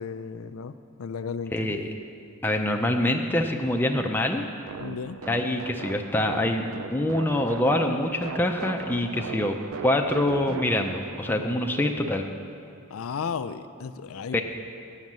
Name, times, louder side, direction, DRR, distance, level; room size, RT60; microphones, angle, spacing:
voice 1, 0.0-1.8 4.8-5.2 12.9-14.4, left 6 dB, 80° left, 11 dB, 0.4 m, -34 dB
voice 2, 1.5-1.9 2.4-4.4 5.3-9.6 9.8-12.3 14.3-14.4, left 1 dB, 10° left, 2 dB, 0.5 m, -25 dB
sound 1, 4.7-12.1, right 5 dB, 75° right, 0.4 m, -38 dB
9.4 x 6.5 x 7.3 m, 2.4 s
head